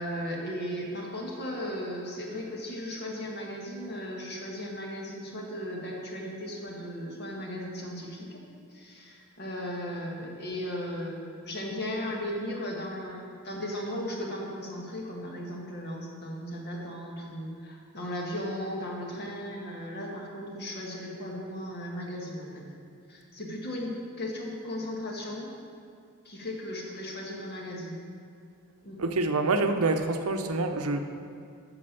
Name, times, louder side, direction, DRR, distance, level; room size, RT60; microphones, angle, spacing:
voice 1, 0.0-8.4 8.7-22.6 23.1-25.5 26.2-28.0 28.8-29.0, equal, 50° left, -1 dB, 1.7 m, -36 dB
voice 2, 29.0-31.0, right 3 dB, 70° right, 6 dB, 0.7 m, -26 dB
8.6 x 6.5 x 6.8 m, 2.3 s
head